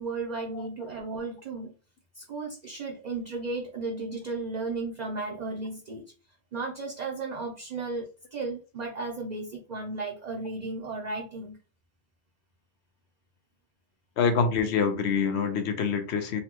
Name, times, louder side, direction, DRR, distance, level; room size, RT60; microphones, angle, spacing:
voice 1, 0.0-1.8 2.1-6.0 6.5-11.6, right 3 dB, 50° right, 0.6 m, -34 dB
voice 2, 14.2-16.4, left 5 dB, 80° left, 0.9 m, -26 dB
3.9 x 2.1 x 2.9 m
omnidirectional pair, 1.1 m